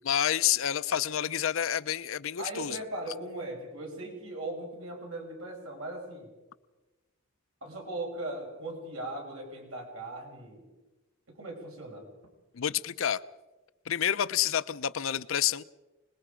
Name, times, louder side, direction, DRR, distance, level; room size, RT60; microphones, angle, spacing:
voice 1, 0.0-2.8 12.5-13.2 13.9-15.6, left 10 dB, 75° left, 14 dB, 0.6 m, -29 dB
voice 2, 2.4-6.3 7.6-10.7 11.3-12.1, right 2 dB, 80° right, 0 dB, 5.8 m, -39 dB
26.0 x 21.0 x 5.1 m, 1.1 s
head